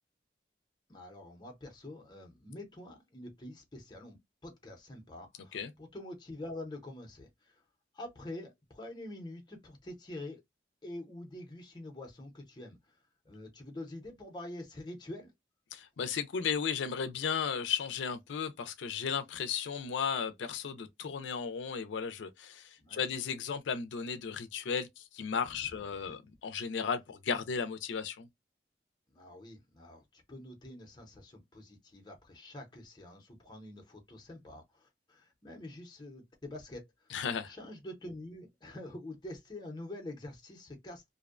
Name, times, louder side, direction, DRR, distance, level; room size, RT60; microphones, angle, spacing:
voice 1, 0.9-4.2 4.4-7.6 7.9-10.4 10.8-12.9 13.3-15.3 22.8-23.0 25.8-25.9 29.1-37.1 37.5-41.0, left 1 dB, 25° left, 0.6 m, -46 dB
voice 2, 15.7-28.3 37.1-37.5, left 6 dB, 90° left, 0.4 m, -35 dB
2.5 x 2.1 x 2.4 m
head